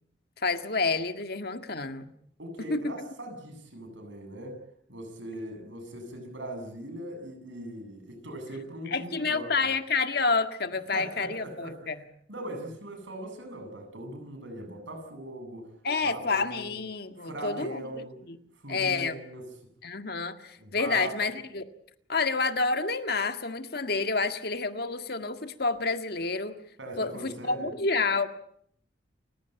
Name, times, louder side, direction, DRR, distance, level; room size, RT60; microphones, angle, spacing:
voice 1, 0.4-2.1 2.7-2.9 8.9-12.0 15.8-18.4 18.7-19.2 19.8-21.6 22.1-26.6 27.0-28.3, left 4 dB, 55° left, 8 dB, 1.8 m, -29 dB
voice 2, 2.4-4.6 4.9-9.7 10.9-15.7 16.0-16.7 17.2-18.2 18.6-19.5 20.5-21.1 26.8-27.7, right 1 dB, 85° right, 4 dB, 7.8 m, -40 dB
29.5 x 16.5 x 9.1 m, 0.69 s
head